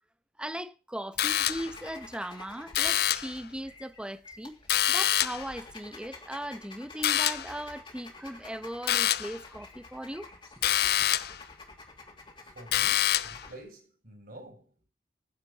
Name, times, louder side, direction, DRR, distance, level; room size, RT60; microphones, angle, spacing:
voice 1, 0.4-4.6 4.9-10.3 10.6-10.9, equal, 5° right, 1.1 m, -38 dB
sound 1, 1.2-1.9 2.7-3.4 4.7-5.5 7.0-7.6 8.9-9.4 10.6-11.4 12.7-13.5, left 11 dB, 60° left, 0.6 m, -26 dB
sound 2, 1.3-13.5, left 3 dB, 30° left, 3.2 m, -50 dB
voice 2, 12.4-14.8, right 1 dB, 55° right, 6.0 m, -49 dB
10.5 x 7.9 x 8.4 m
head